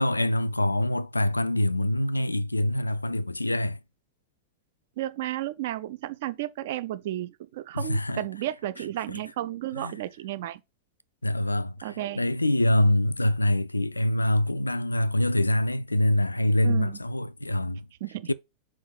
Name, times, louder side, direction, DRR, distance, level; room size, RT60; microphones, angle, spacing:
voice 1, 0.0-3.8 7.7-8.2 9.8-10.0 11.2-17.9 18.3-18.4, left 1 dB, 85° left, 0.3 m, -25 dB
voice 2, 5.0-10.6 11.8-12.2 16.6-17.0 18.0-18.3, right 14 dB, 55° right, 0.6 m, -33 dB
5.0 x 3.8 x 5.7 m
figure-of-eight pair, 90°, 0 cm